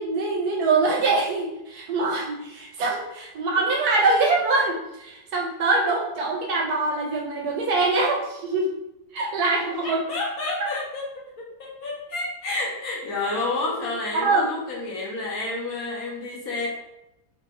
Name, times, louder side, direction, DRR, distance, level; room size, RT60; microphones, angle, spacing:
voice 1, 0.0-8.7 9.1-10.0 14.2-14.5, right 3 dB, 70° right, 0 dB, 1.0 m, -23 dB
voice 2, 9.8-11.0 11.4-16.7, left 2 dB, 60° left, -4 dB, 1.1 m, -30 dB
3.9 x 2.6 x 2.9 m, 0.90 s
omnidirectional pair, 1.9 m